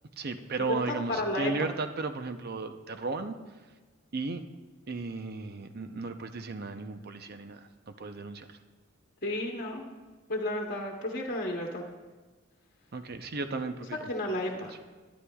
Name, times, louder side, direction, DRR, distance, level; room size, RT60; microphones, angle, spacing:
voice 1, 0.2-3.3 4.1-4.4 4.9-7.6 7.9-8.6 12.9-14.1 14.6-14.7, right 3 dB, 50° right, 8 dB, 0.6 m, -35 dB
voice 2, 0.7-1.7 9.2-9.8 10.3-11.8 14.1-14.7, left 1 dB, 50° left, -1 dB, 1.1 m, -32 dB
21.0 x 10.5 x 2.3 m, 1.3 s
head